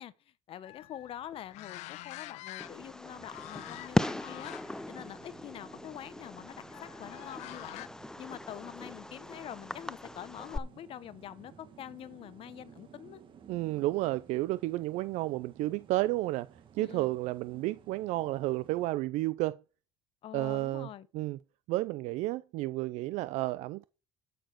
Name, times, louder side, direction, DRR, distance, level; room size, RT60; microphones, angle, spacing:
voice 1, 0.0-4.5 4.9-7.9 8.2-13.2 16.8-17.1 20.2-21.1, left 11 dB, 50° left, 0.9 m, -45 dB
sound 1, 0.6-3.0 3.3-4.8 5.2-5.4 6.7-7.9, left 18 dB, 70° left, 0.5 m, -46 dB
Fireworks, 2.6-10.6, left 1 dB, 5° left, 0.5 m, -38 dB
sound 2, 3.1-18.9, right 7 dB, 45° right, 2.1 m, -57 dB
voice 2, 13.5-16.5 16.7-19.6 20.3-20.9 21.1-21.4 21.7-23.9, right 18 dB, 70° right, 0.5 m, -31 dB
12.0 x 6.7 x 4.6 m
cardioid pair, 115°, 12 cm